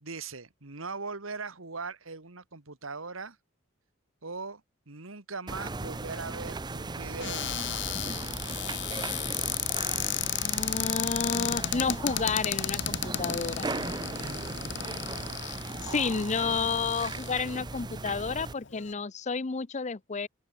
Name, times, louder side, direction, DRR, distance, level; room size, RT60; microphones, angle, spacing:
voice 1, 0.0-3.4 4.2-4.6 4.9-8.2 15.7-16.2, right 4 dB, 80° right, 2.1 m, -40 dB
sound 1, 5.5-18.5, right 3 dB, 20° right, 0.6 m, -37 dB
Cupboard open or close, 7.2-17.6 18.2-18.3 18.6-18.9, left 12 dB, 60° left, 1.0 m, -34 dB
voice 2, 10.2-13.8 15.4-15.6 15.8-20.3, left 5 dB, 35° left, 0.6 m, -31 dB
open air
head